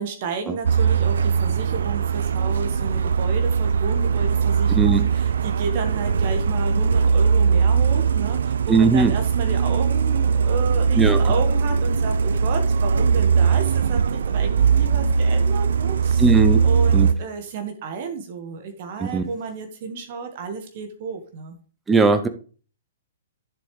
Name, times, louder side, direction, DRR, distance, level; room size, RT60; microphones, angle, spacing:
voice 1, 0.0-16.3 16.6-21.6, right 5 dB, 45° right, 6 dB, 1.6 m, -32 dB
Truck, 0.7-17.1, right 6 dB, 60° right, 0.6 m, -20 dB
voice 2, 4.7-5.0 8.7-9.1 11.0-11.2 16.2-16.6 16.9-17.1 19.0-19.3 21.9-22.3, right 4 dB, 10° right, 8 dB, 0.9 m, -18 dB
10.5 x 7.6 x 3.3 m, 0.39 s
figure-of-eight pair, 115°, 0 cm